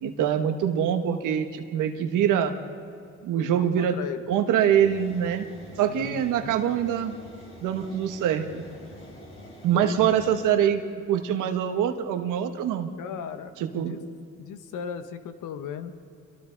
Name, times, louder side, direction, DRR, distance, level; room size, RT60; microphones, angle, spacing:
voice 1, 0.0-2.5 3.2-4.0 4.3-5.5 5.8-7.2 7.6-8.6 9.6-10.8 11.1-12.9 13.6-14.0, right 9 dB, 90° right, 7 dB, 1.4 m, -24 dB
voice 2, 3.3-4.2 5.9-6.5 9.7-10.1 13.0-14.0 14.4-15.9, left 8 dB, 85° left, 9 dB, 1.3 m, -37 dB
sound 1, 4.7-10.5, left 2 dB, 45° left, 4.7 m, -46 dB
28.5 x 23.0 x 4.0 m, 2.5 s
cardioid pair, 90°, 30 cm